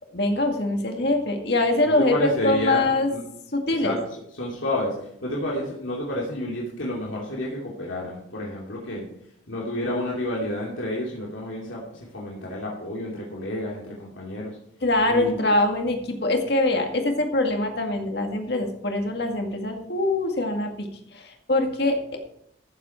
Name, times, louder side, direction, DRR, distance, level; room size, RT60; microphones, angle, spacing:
voice 1, 0.1-3.1 3.5-4.0 14.8-22.2, left 2 dB, 55° left, 4 dB, 2.0 m, -23 dB
voice 2, 1.8-3.2 3.8-4.0 4.4-9.0 9.5-14.6 15.1-15.4, left 1 dB, 85° left, -4 dB, 2.8 m, -30 dB
14.5 x 7.6 x 4.4 m, 0.74 s
head